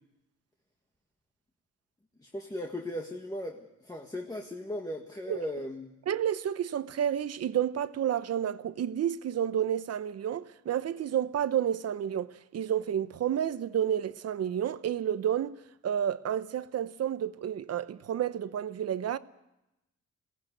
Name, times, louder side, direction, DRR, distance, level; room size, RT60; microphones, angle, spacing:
voice 1, 2.2-5.9, left 1 dB, 15° left, 1.7 m, -37 dB
voice 2, 6.1-15.6 15.8-19.2, right 9 dB, 55° right, 0.9 m, -30 dB
22.0 x 18.0 x 7.9 m
cardioid pair, 115°, 29 cm